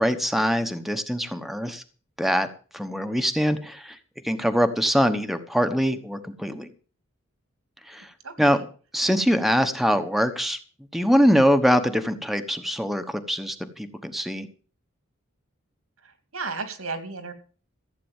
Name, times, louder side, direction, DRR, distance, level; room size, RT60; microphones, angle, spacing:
voice 1, 0.0-1.8 2.2-2.5 2.7-4.0 4.2-6.7 7.9-8.1 8.4-8.6 8.9-10.6 10.9-14.5, equal, ahead, 7 dB, 1.1 m, -23 dB
voice 2, 8.2-8.7 16.0-17.3, right 4 dB, 85° right, 9 dB, 2.6 m, -34 dB
15.0 x 8.5 x 7.2 m, 0.39 s
head